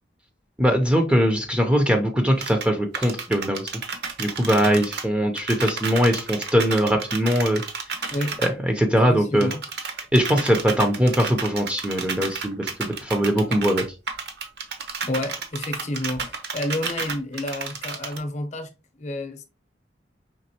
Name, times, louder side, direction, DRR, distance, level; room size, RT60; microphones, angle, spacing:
voice 1, 0.6-3.7 4.2-7.6 7.9-8.1 8.4-9.5 10.1-13.8, equal, 5° right, 0.5 m, -21 dB
sound 1, 2.4-2.7 2.9-5.1 5.3-8.5 9.4-18.2, right 5 dB, 60° right, 0.8 m, -31 dB
voice 2, 8.1-8.4 9.1-9.6 15.1-18.7 19.0-19.4, left 1 dB, 40° left, 0.8 m, -29 dB
5.3 x 3.5 x 2.8 m
head